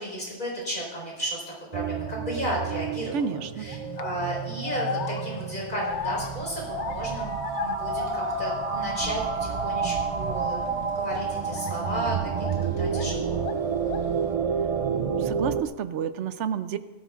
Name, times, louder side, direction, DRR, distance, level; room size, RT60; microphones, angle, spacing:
voice 1, 0.0-1.4 1.7-12.5 12.8-13.4, equal, 40° left, -3 dB, 4.5 m, -33 dB
sound 1, 1.7-15.6, right 6 dB, 60° right, 0.3 m, -30 dB
voice 2, 3.1-3.7 15.0-16.8, right 7 dB, 75° right, 12 dB, 0.9 m, -30 dB
sound 2, 3.7-4.0 4.6-9.0 9.3-10.0 10.5-10.7 11.5-13.1 13.4-14.2, left 7 dB, 70° left, 0.9 m, -35 dB
17.0 x 14.0 x 2.4 m, 1.2 s
omnidirectional pair, 1.2 m